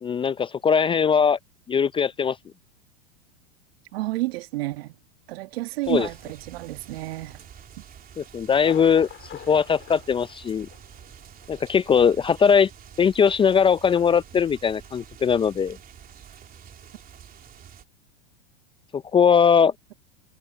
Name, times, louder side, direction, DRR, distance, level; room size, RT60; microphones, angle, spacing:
voice 1, 0.0-1.4 1.7-2.4 5.9-6.1 8.2-9.1 9.5-10.7 11.5-12.7 13.0-15.8 18.9-19.7, left 7 dB, 15° left, 0.5 m, -20 dB
voice 2, 3.9-4.9 5.3-7.4 7.8-7.9, right 19 dB, 65° right, 1.5 m, -30 dB
sound 1, 5.8-17.8, right 9 dB, 25° right, 3.4 m, -47 dB
Thunder, 8.6-11.1 11.4-11.5 12.1-12.2, left 12 dB, 35° left, 3.2 m, -44 dB
hypercardioid pair, 110°, 32 cm